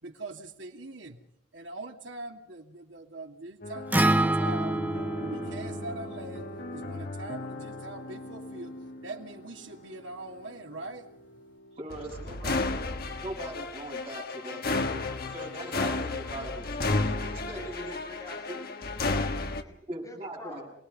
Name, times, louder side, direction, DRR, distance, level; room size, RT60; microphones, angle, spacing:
voice 1, 0.0-1.2 1.5-4.8 5.2-11.1 12.4-12.8, right 2 dB, 75° right, 3 dB, 2.6 m, -42 dB
sound 1, 3.6-19.6, left 3 dB, 55° left, 1.5 m, -34 dB
Acoustic guitar, 3.9-8.2, right 1 dB, 10° right, 0.8 m, -29 dB
voice 2, 11.8-12.7 13.2-14.9 15.3-17.9 18.5-18.6 19.9-20.7, right 1 dB, 30° right, -1 dB, 7.5 m, -40 dB
voice 3, 17.5-19.7 20.0-20.6, left 1 dB, 15° left, 0 dB, 6.8 m, -46 dB
27.5 x 18.5 x 5.5 m, 0.70 s
head